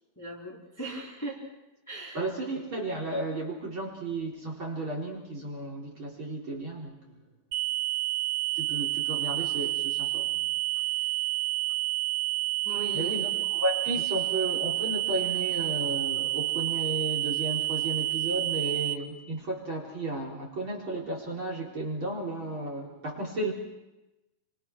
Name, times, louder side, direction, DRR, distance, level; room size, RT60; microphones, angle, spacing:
voice 1, 0.2-1.5 1.9-2.3 12.6-13.2, right 1 dB, 5° left, -2 dB, 4.0 m, -38 dB
voice 2, 2.1-7.2 8.5-10.4 12.9-23.5, right 2 dB, 30° right, -1 dB, 4.6 m, -33 dB
sound 1, 7.5-18.9, right 19 dB, 50° right, 2.5 m, -29 dB
30.0 x 25.5 x 6.1 m, 0.97 s
omnidirectional pair, 4.4 m